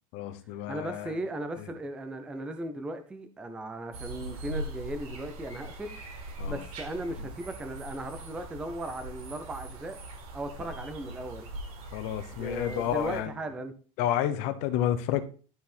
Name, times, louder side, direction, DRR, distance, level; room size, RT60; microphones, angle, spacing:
voice 1, 0.1-1.2 1.6-1.7 6.4-6.6 11.9-13.3 14.0-15.2, left 11 dB, 45° left, 0.9 m, -30 dB
voice 2, 0.7-6.0 6.4-10.0 10.3-11.5 12.3-13.7, right 1 dB, 5° right, 0.4 m, -37 dB
sound 1, 3.9-13.2, right 1 dB, 90° right, 4.1 m, -41 dB
12.0 x 4.1 x 4.2 m
supercardioid pair, 175°, 18 cm